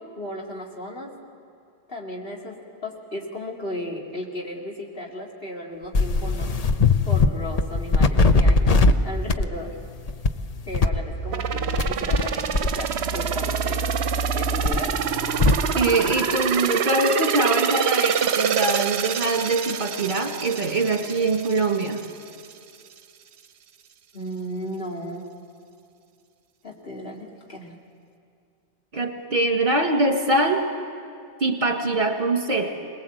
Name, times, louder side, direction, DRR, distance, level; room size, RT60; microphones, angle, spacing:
voice 1, 0.2-1.1 1.9-6.5 7.0-9.7 10.7-13.9 14.3-15.0 24.1-25.3 26.6-27.7, left 1 dB, 60° left, -1 dB, 2.6 m, -35 dB
sound 1, 5.9-7.3 7.6-8.9 9.3-9.6 10.1-10.3 10.7-12.3 12.5-15.6, left 3 dB, 40° left, 0.7 m, -21 dB
sound 2, 11.3-22.1 22.4-22.5, right 7 dB, 75° right, 1.0 m, -26 dB
voice 2, 15.8-22.0 28.9-30.7 31.4-32.7, right 2 dB, 45° right, 3 dB, 2.0 m, -23 dB
22.5 x 20.5 x 7.9 m, 2.5 s
omnidirectional pair, 1.1 m